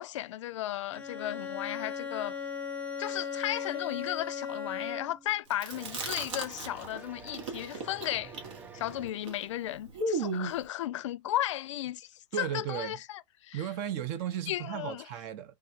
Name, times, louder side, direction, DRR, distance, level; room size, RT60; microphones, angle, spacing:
voice 1, 0.0-2.4 3.0-8.4 8.7-12.1 12.4-13.6 14.5-15.0, left 13 dB, 80° left, 0.4 m, -35 dB
Bowed string instrument, 0.9-5.3, left 6 dB, 10° left, 0.8 m, -37 dB
Chewing mastication, 5.5-7.0 7.3-10.6, right 2 dB, 75° right, 1.3 m, -35 dB
sound 1, 5.7-9.1, right 6 dB, 10° right, 0.3 m, -49 dB
voice 2, 12.3-13.0 13.5-15.5, right 10 dB, 45° right, 0.7 m, -35 dB
3.4 x 2.3 x 2.5 m
supercardioid pair, 135°, 16 cm